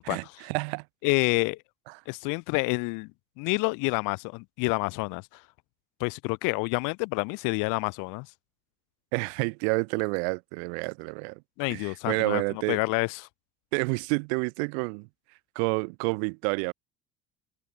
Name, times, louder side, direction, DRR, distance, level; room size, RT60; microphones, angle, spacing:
voice 1, 0.1-0.8 1.9-2.0 9.1-11.4 11.7-12.8 13.7-15.1 15.6-16.7, right 37 dB, 90° right, 5.7 m, -29 dB
voice 2, 1.0-1.6 2.1-3.1 3.4-5.2 6.0-8.3 11.6-12.4 12.7-13.2, left 29 dB, 80° left, 6.4 m, -28 dB
supercardioid pair, 105°, 31 cm